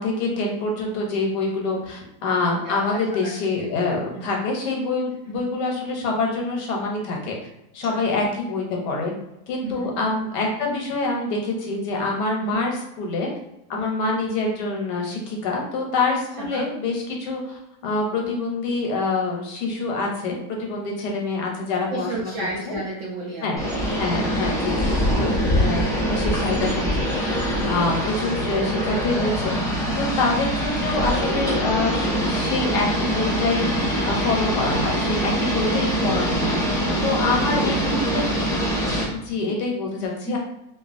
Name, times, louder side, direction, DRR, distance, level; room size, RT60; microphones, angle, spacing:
voice 1, 0.0-7.4 7.7-9.1 9.5-13.3 13.7-22.3 23.4-23.6 24.0-29.6 30.0-33.7 34.0-36.6 37.0-38.3 39.1-40.4, left 3 dB, 90° left, 0 dB, 1.3 m, -26 dB
voice 2, 2.6-3.3 4.1-4.3 5.3-5.4 7.9-8.3 9.6-9.9 12.4-12.6 13.7-13.9 16.4-16.6 21.9-23.7 27.5-27.8 36.9-37.1 37.5-38.3 40.0-40.4, right 2 dB, 70° right, -4 dB, 0.7 m, -33 dB
sound 1, 23.6-39.0, equal, 5° left, 0.4 m, -23 dB
3.0 x 2.2 x 2.4 m, 0.85 s
omnidirectional pair, 1.7 m